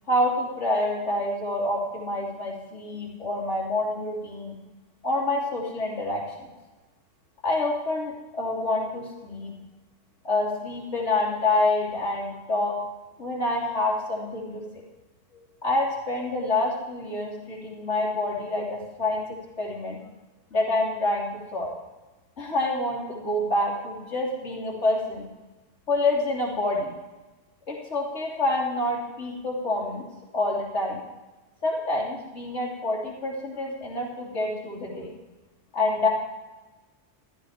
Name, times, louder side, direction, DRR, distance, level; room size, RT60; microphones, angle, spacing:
voice 1, 0.1-4.6 5.0-6.5 7.4-9.5 10.2-12.8 13.2-14.6 15.6-19.2 19.6-20.0 20.5-21.7 22.4-25.3 25.9-26.9 27.7-30.1 30.3-31.0 31.6-35.1 35.7-36.1, left 2 dB, 85° left, -2 dB, 3.3 m, -27 dB
15.0 x 12.0 x 5.0 m, 1.2 s
omnidirectional pair, 1.2 m